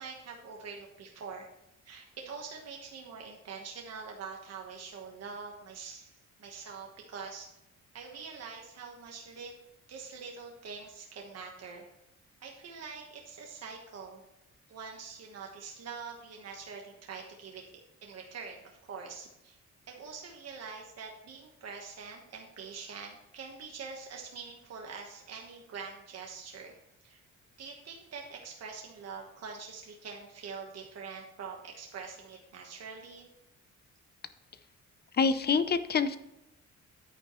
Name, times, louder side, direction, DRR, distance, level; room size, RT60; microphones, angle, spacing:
voice 1, 0.0-1.5 1.8-6.1 6.4-7.5 7.9-9.5 9.9-11.9 12.4-14.2 14.7-19.6 19.9-26.8 27.0-27.2 27.6-33.3, right 5 dB, 55° right, 0 dB, 1.3 m, -44 dB
voice 2, 35.1-36.2, left 5 dB, 35° left, 12 dB, 0.6 m, -26 dB
9.9 x 9.1 x 3.1 m, 0.88 s
wide cardioid pair, 160°, 30 cm